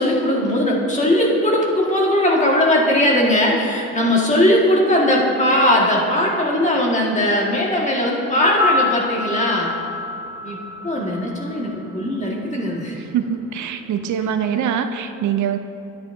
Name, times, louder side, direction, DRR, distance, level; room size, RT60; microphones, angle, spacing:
voice 1, 0.0-9.7 10.4-10.6 10.8-13.0, left 1 dB, 25° left, -2 dB, 1.8 m, -19 dB
sound 1, 8.4-12.6 12.9-13.0, left 3 dB, 10° right, 1.5 m, -27 dB
voice 2, 13.0-15.6, right 8 dB, 70° right, 8 dB, 0.5 m, -23 dB
11.0 x 9.4 x 2.7 m, 2.7 s
cardioid pair, 90°, 30 cm